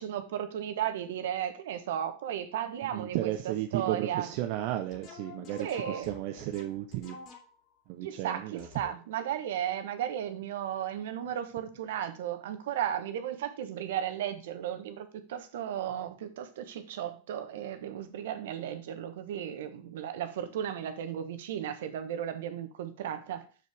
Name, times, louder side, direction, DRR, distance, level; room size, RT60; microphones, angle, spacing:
voice 1, 0.0-4.3 5.6-6.1 8.0-23.4, right 10 dB, 75° right, 9 dB, 1.0 m, -35 dB
voice 2, 2.8-7.2 7.9-8.7, right 14 dB, 55° right, 5 dB, 0.7 m, -34 dB
sound 1, 4.9-7.8 8.6-9.2, left 4 dB, 50° left, 2.8 m, -48 dB
6.7 x 6.5 x 3.4 m, 0.38 s
hypercardioid pair, 100°, 0 cm